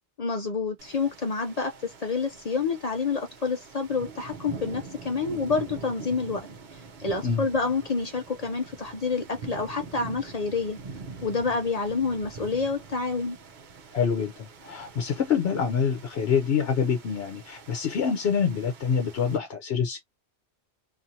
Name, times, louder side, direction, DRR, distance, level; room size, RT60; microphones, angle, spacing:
voice 1, 0.2-6.5 7.0-10.8 11.2-13.4, left 4 dB, 50° left, 0.5 m, -28 dB
sound 1, 0.8-19.4, right 4 dB, 50° right, 0.7 m, -44 dB
voice 2, 13.9-20.0, left 6 dB, 65° left, 0.9 m, -26 dB
2.6 x 2.5 x 2.7 m
omnidirectional pair, 1.2 m